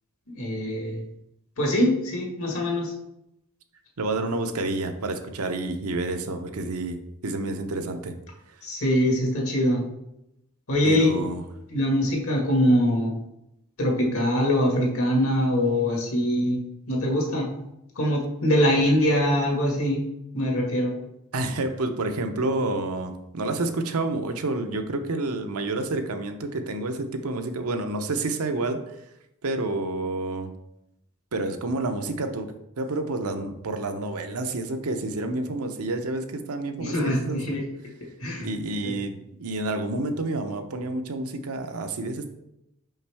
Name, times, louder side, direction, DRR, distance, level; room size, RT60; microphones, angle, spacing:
voice 1, 0.3-1.0 1.6-2.9 8.6-9.8 10.7-11.1 11.7-13.1 13.8-16.6 16.9-17.5 18.0-20.0 20.3-21.0 36.8-37.6 38.2-38.5 38.8-38.9, equal, 65° left, -1 dB, 1.9 m, -23 dB
voice 2, 4.0-8.1 8.5-8.6 10.8-11.4 21.3-29.0 29.4-30.5 31.3-37.4 38.4-42.3, right 2 dB, 80° right, 6 dB, 0.7 m, -29 dB
5.6 x 5.4 x 3.4 m, 0.85 s
head